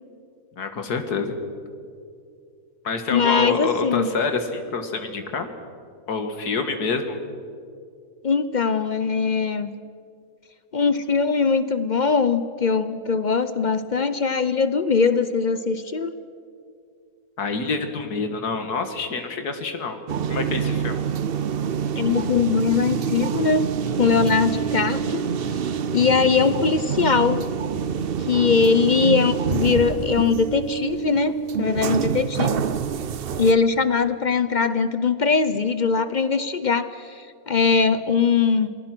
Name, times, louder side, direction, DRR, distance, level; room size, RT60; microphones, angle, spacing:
voice 1, 0.6-1.4 2.8-5.5 6.1-7.2 17.4-20.0 20.3-21.0, left 4 dB, 90° left, 7 dB, 2.2 m, -27 dB
voice 2, 3.1-4.1 8.2-9.7 10.7-16.1 22.0-23.7 23.9-25.2 25.9-27.5 28.2-32.6 33.4-38.7, left 5 dB, 55° left, 13 dB, 0.5 m, -21 dB
sound 1, 20.1-33.5, right 7 dB, 55° right, 0.7 m, -26 dB
27.5 x 20.0 x 6.0 m, 2.4 s
omnidirectional pair, 1.6 m